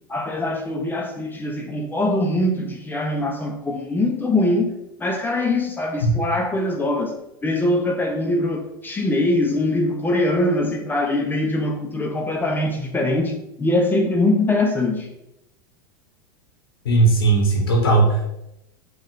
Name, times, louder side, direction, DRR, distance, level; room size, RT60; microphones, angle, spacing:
voice 1, 0.1-4.7 5.0-7.1 7.4-15.1, left 1 dB, 15° left, 0.7 m, -22 dB
voice 2, 16.8-18.3, right 3 dB, 85° left, 1.4 m, -17 dB
5.4 x 2.5 x 3.8 m
hypercardioid pair, 95°, 12 cm